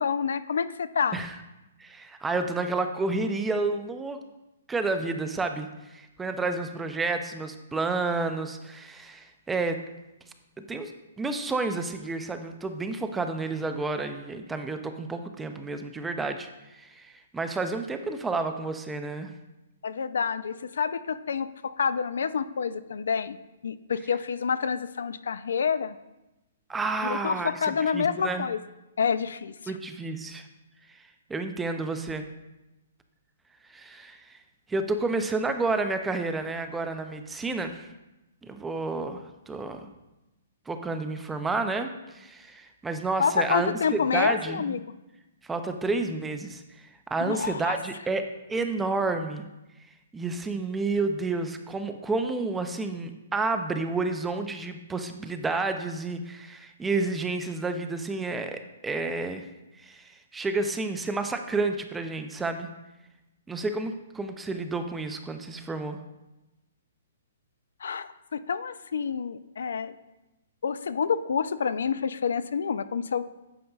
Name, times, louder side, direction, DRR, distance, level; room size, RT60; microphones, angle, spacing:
voice 1, 0.0-1.2 19.8-23.4 23.6-25.9 27.0-28.6 29.0-29.5 43.2-44.8 47.2-47.7 67.8-69.9 70.6-73.2, left 6 dB, 75° left, 14 dB, 0.4 m, -28 dB
voice 2, 1.8-4.2 4.7-9.8 10.6-10.9 11.2-19.3 26.7-28.5 29.7-30.5 30.9-31.0 31.3-32.3 33.7-34.4 34.7-37.9 38.5-39.9 40.7-44.8 45.4-46.6 47.1-48.2 48.5-49.5 50.1-59.4 59.8-62.7 63.5-66.0, right 3 dB, 5° right, 7 dB, 0.3 m, -30 dB
9.2 x 6.5 x 2.3 m, 0.99 s
hypercardioid pair, 170°, 0 cm